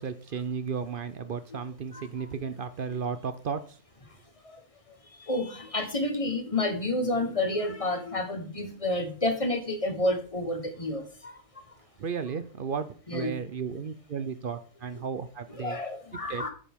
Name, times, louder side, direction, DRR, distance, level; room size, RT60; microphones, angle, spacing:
voice 1, 0.0-3.8 12.0-15.8 16.3-16.4, right 6 dB, 55° right, 11 dB, 0.6 m, -34 dB
voice 2, 5.2-11.3 13.1-13.3 15.5-16.5, left 1 dB, 25° left, 6 dB, 1.2 m, -29 dB
10.0 x 7.1 x 3.6 m, 0.41 s
omnidirectional pair, 1.6 m